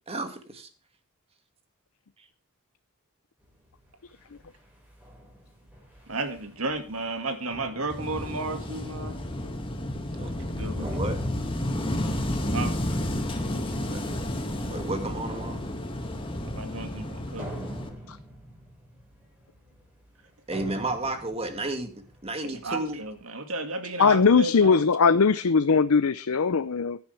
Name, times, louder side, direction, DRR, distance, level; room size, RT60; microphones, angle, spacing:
voice 1, 0.1-0.7 10.2-10.4 10.8-11.2 13.9-14.0 14.7-15.6 20.5-23.0, right 2 dB, 25° right, 2.1 m, -32 dB
sound 1, 3.4-23.3, equal, 10° right, 5.1 m, -47 dB
voice 2, 6.1-9.2 10.6-11.0 12.5-12.7 16.6-17.5 22.4-24.8, right 3 dB, 65° right, 2.1 m, -33 dB
Wind / Waves surf, 7.9-17.9, left 1 dB, 25° left, 1.9 m, -31 dB
voice 3, 24.0-27.0, left 5 dB, 70° left, 0.6 m, -20 dB
16.0 x 10.0 x 3.4 m
head